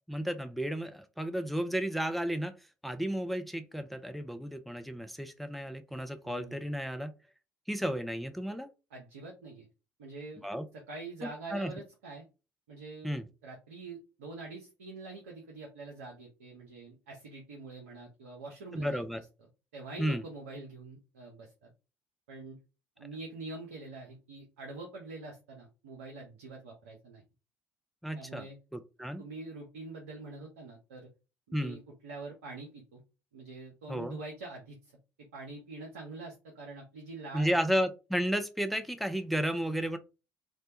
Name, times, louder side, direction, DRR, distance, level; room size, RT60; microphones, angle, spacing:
voice 1, 0.1-2.5 2.8-7.1 7.7-8.7 10.4-10.6 11.5-11.7 13.0-13.3 18.7-19.2 20.0-20.2 28.0-28.5 28.7-29.2 31.5-31.8 33.9-34.2 37.3-40.0, equal, ahead, 8 dB, 0.4 m, -33 dB
voice 2, 6.2-6.6 8.9-9.7 10.0-10.5 10.7-12.2 12.7-19.2 19.7-21.7 22.3-22.6 23.0-27.2 28.1-28.6 29.2-31.1 31.5-33.0 33.3-34.9 35.2-37.5, right 3 dB, 80° right, 0 dB, 0.5 m, -45 dB
2.1 x 2.0 x 2.8 m, 0.30 s
figure-of-eight pair, 55°, 7 cm